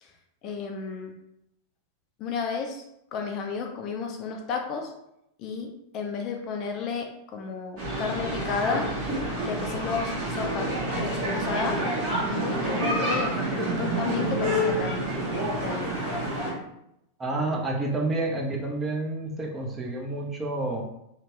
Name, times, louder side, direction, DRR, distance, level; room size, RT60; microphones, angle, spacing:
voice 1, 0.4-1.1 2.2-2.8 3.1-4.9 5.4-8.9 9.4-10.7 11.0-15.1 15.6-16.0, left 5 dB, 35° left, 3 dB, 0.4 m, -32 dB
sound 1, 7.8-16.5, right 1 dB, 45° right, 1.3 m, -28 dB
voice 2, 17.2-20.8, right 2 dB, 15° right, 0 dB, 0.5 m, -29 dB
2.8 x 2.1 x 3.1 m, 0.81 s
figure-of-eight pair, 90°, 0 cm